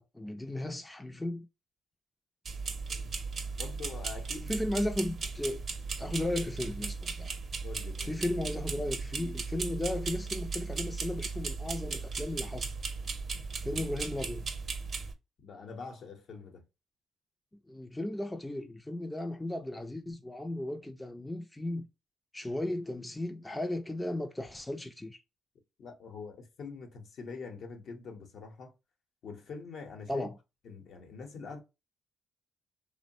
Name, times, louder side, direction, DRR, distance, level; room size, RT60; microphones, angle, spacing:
voice 1, 0.0-1.5 4.5-5.6 6.0-7.3 8.0-12.7 13.6-14.5 17.7-21.9 22.3-25.2 30.1-30.3, left 1 dB, 10° left, 0.4 m, -35 dB
sound 1, 2.5-15.1, right 4 dB, 45° right, 0.6 m, -37 dB
voice 2, 3.6-4.5 7.6-8.1 13.7-13.8 15.4-16.6 25.8-28.7 29.2-30.3 30.6-31.6, left 4 dB, 65° left, 0.8 m, -44 dB
3.0 x 2.0 x 2.6 m
cardioid pair, 90°, 0 cm